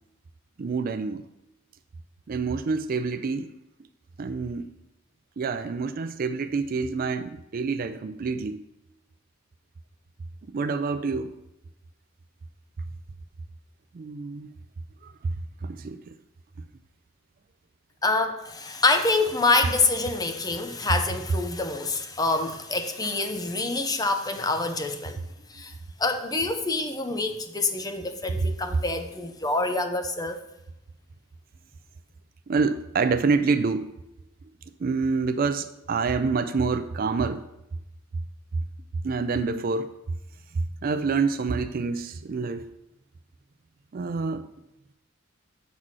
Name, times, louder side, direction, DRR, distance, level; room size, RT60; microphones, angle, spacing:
voice 1, 0.6-1.2 2.3-3.6 4.2-4.7 5.4-8.6 10.5-11.3 13.9-14.5 15.0-15.3 15.6-16.2 32.5-33.9 34.8-37.5 39.0-40.0 40.5-42.7 43.9-44.5, right 4 dB, 45° right, 0.4 m, -27 dB
voice 2, 18.0-25.2 25.5-25.7 26.0-30.4, left 3 dB, 20° left, 0.6 m, -26 dB
7.3 x 4.1 x 6.2 m
head